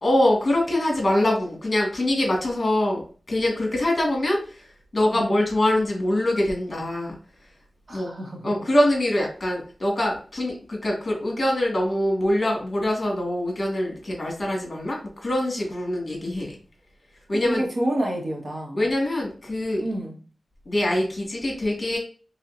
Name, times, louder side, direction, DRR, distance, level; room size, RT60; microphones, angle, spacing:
voice 1, 0.0-4.6 4.9-7.2 7.9-8.1 8.4-16.6 17.3-17.6 18.7-19.8 20.7-22.0, left 1 dB, 40° left, 0 dB, 1.8 m, -24 dB
voice 2, 7.9-8.5 17.4-18.8 19.8-20.2, right 1 dB, 40° right, -1 dB, 1.5 m, -28 dB
4.1 x 3.7 x 2.5 m, 0.39 s
wide cardioid pair, 80°, 0 cm